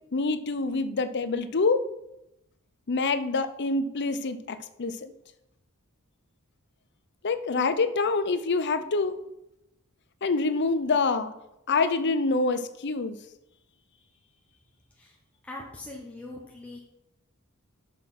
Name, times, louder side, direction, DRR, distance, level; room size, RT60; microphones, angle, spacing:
voice 1, 0.1-1.8 2.9-5.1 7.2-9.1 10.2-11.3 11.7-13.2, left 3 dB, 55° left, 12 dB, 0.7 m, -26 dB
voice 2, 15.4-16.8, left 2 dB, 5° left, -2 dB, 1.1 m, -41 dB
7.5 x 6.7 x 6.1 m, 0.87 s
head